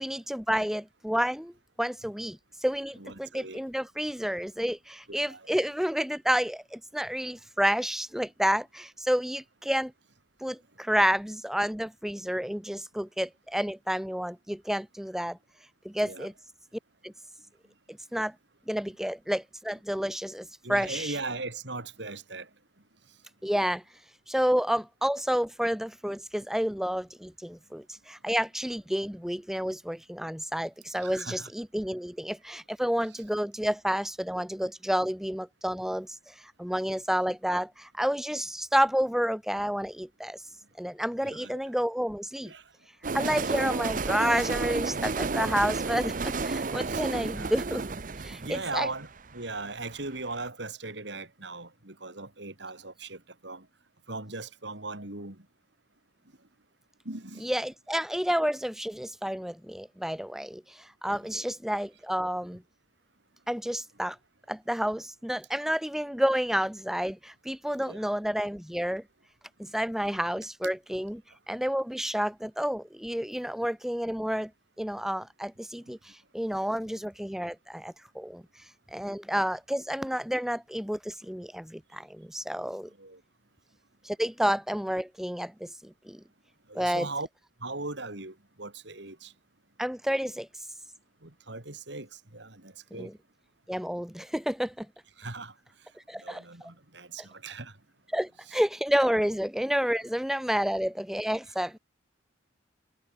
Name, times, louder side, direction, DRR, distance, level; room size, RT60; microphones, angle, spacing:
voice 1, 0.0-1.5 1.8-9.9 10.4-15.4 15.8-16.3 17.0-17.1 17.9-18.3 18.7-21.1 23.4-23.8 24.3-36.2 36.6-40.4 40.8-42.5 43.1-47.8 48.2-48.9 57.4-62.6 63.5-64.2 64.5-69.0 69.6-71.2 71.5-74.5 74.8-76.0 76.3-78.4 78.9-82.9 84.0-86.2 86.7-87.1 89.8-90.5 93.0-93.1 93.7-94.9 96.1-96.4 98.1-101.8, equal, ahead, 0.7 m, -30 dB
voice 2, 3.0-3.6 5.2-5.6 16.0-16.3 20.6-22.5 31.0-31.5 33.1-33.2 41.2-41.6 42.4-42.6 46.9-47.5 48.4-53.7 54.1-55.4 57.1-57.5 61.3-61.5 67.7-68.1 83.0-83.2 86.7-87.3 87.6-89.3 91.2-93.1 95.2-95.5 96.2-97.7 98.5-98.6 101.5-101.6, right 3 dB, 65° right, 3.4 m, -39 dB
sound 1, 43.0-50.1, right 3 dB, 40° right, 0.7 m, -31 dB
head